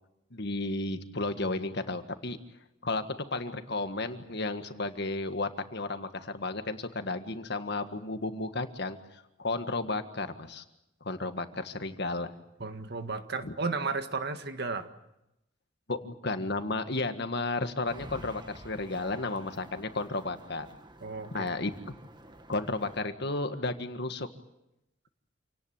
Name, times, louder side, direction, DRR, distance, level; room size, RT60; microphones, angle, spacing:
voice 1, 0.3-2.4 2.8-3.0 3.3-9.0 9.4-10.6 11.0-12.3 13.4-13.5 15.9-20.7 21.3-21.7 22.5-24.3, left 2 dB, 60° left, 8 dB, 1.7 m, -33 dB
voice 2, 12.6-14.9 21.0-21.5, right 4 dB, 55° right, 8 dB, 1.8 m, -34 dB
sound 1, 17.9-23.0, right 1 dB, 25° right, 1.6 m, -50 dB
28.0 x 18.5 x 9.0 m, 0.89 s
head